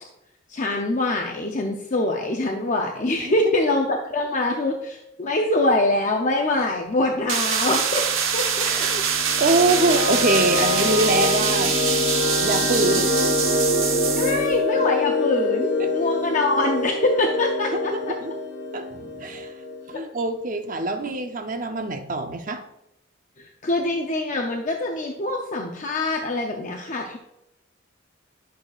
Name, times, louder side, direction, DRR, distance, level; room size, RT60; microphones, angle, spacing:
voice 1, 0.5-8.0 8.3-8.9 14.1-18.1 19.9-20.0 23.4-27.2, left 2 dB, 40° left, 2 dB, 0.6 m, -24 dB
sound 1, 6.8-14.5, left 1 dB, 20° right, 1.4 m, -36 dB
sound 2, 7.3-14.5, right 7 dB, 90° right, 0.9 m, -24 dB
voice 2, 8.7-9.0 9.4-11.7 12.0-12.1 12.4-13.3 15.8-15.9 17.9-18.3 18.7-19.5 19.9-22.6, right 2 dB, 40° right, 7 dB, 0.6 m, -24 dB
sound 3, 9.1-19.9, left 2 dB, 75° left, 1.3 m, -25 dB
11.0 x 6.3 x 2.4 m, 0.86 s
head